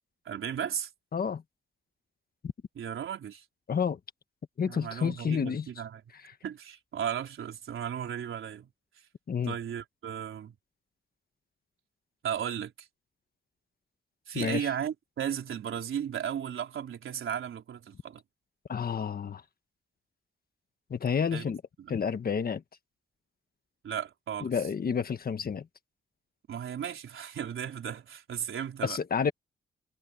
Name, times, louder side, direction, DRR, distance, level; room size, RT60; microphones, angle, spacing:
voice 1, 0.3-0.9 2.8-3.4 4.7-6.0 6.4-8.7 9.5-10.5 12.2-12.9 14.3-18.2 21.3-21.5 21.8-21.9 23.8-24.5 26.5-29.0, right 9 dB, 80° right, 3.9 m, -35 dB
voice 2, 1.1-1.4 3.7-4.0 4.6-5.7 9.3-9.5 14.3-14.7 18.7-19.4 20.9-21.6 21.9-22.6 24.4-25.7 28.8-29.3, left 6 dB, 50° left, 1.5 m, -29 dB
wide cardioid pair, 135°, 21 cm